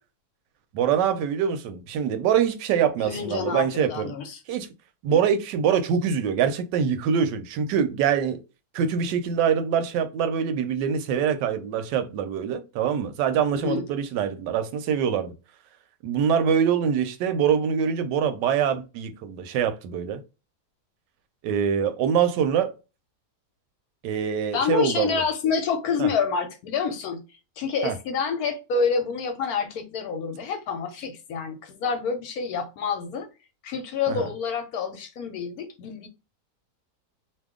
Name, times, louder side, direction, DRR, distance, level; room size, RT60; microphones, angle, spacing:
voice 1, 0.7-4.1 4.5-4.7 5.0-8.4 8.7-15.3 16.0-20.2 21.4-22.7 24.0-25.2 26.0-26.1 27.8-28.0 34.1-34.2, right 7 dB, 85° right, 1.2 m, -24 dB
voice 2, 3.0-4.4 5.1-5.2 13.6-13.9 24.5-27.2 27.6-33.3 33.6-36.1, left 5 dB, 70° left, 1.0 m, -27 dB
2.8 x 2.3 x 3.5 m
omnidirectional pair, 1.8 m